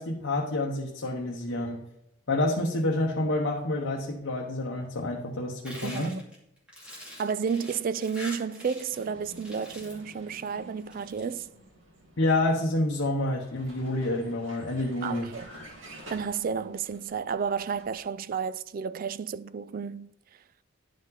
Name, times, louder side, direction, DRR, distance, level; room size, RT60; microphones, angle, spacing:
voice 1, 0.0-1.8 2.3-6.2 12.2-15.3, left 2 dB, 70° left, 1.0 m, -28 dB
sound 1, 5.7-9.0 9.3-10.1 10.8-11.2, equal, 5° right, 2.6 m, -44 dB
voice 2, 5.8-6.2 7.2-11.5 15.0-15.5 16.1-20.1, right 6 dB, 45° right, 0.3 m, -31 dB
Vehicle, 8.9-18.0, right 1 dB, 70° right, 2.0 m, -50 dB
10.5 x 5.1 x 4.0 m
head